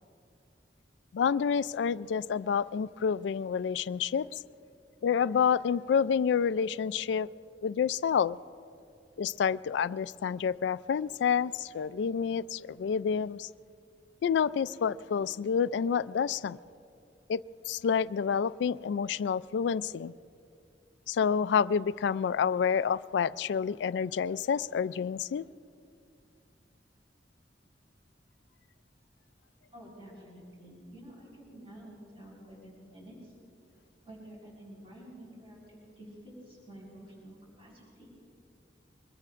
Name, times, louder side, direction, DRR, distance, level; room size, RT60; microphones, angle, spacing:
voice 1, 1.1-4.4 5.0-7.3 7.6-8.4 9.2-13.5 14.2-16.6 17.3-17.4 17.7-20.1 21.1-25.5, left 7 dB, 80° left, 17 dB, 0.3 m, -28 dB
voice 2, 29.7-33.3 34.0-38.1, right 1 dB, 30° right, -5 dB, 4.5 m, -50 dB
23.5 x 21.5 x 2.5 m, 2.5 s
head